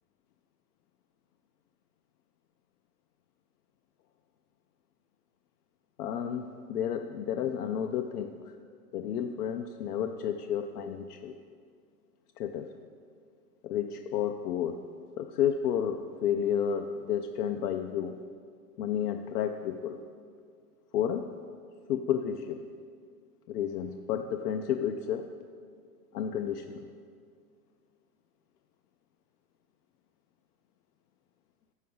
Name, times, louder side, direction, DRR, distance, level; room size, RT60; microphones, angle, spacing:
voice 1, 6.0-8.5 8.9-11.4 12.4-12.7 13.6-14.8 15.2-18.1 18.8-20.0 20.9-21.3 21.9-22.6 23.5-25.3 26.1-26.8, left 9 dB, 80° left, 7 dB, 0.6 m, -31 dB
7.6 x 6.4 x 5.4 m, 2.2 s
hypercardioid pair, 130°, 46 cm